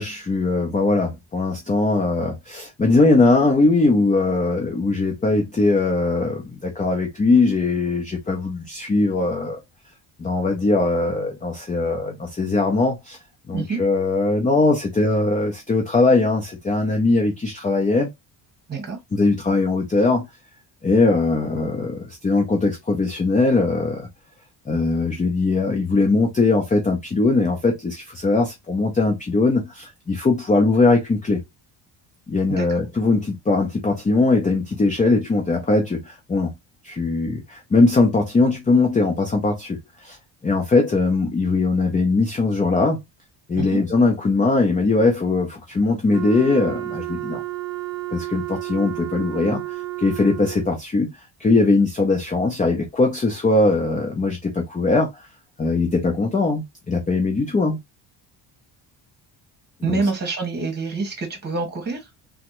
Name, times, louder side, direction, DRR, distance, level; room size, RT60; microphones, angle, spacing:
voice 1, 0.0-9.6 10.2-13.2 13.5-18.1 19.1-20.3 20.8-24.1 24.7-31.4 32.3-36.5 36.8-40.2 40.4-43.0 43.5-47.4 48.1-55.3 55.6-57.8 59.8-60.0, left 3 dB, 15° left, 0.5 m, -20 dB
Wind instrument woodwind instrument, 46.1-50.8, right 18 dB, 45° right, 0.6 m, -31 dB
voice 2, 59.8-62.0, right 4 dB, 20° right, 1.3 m, -26 dB
3.4 x 2.2 x 2.9 m
cardioid pair, 130°, 48 cm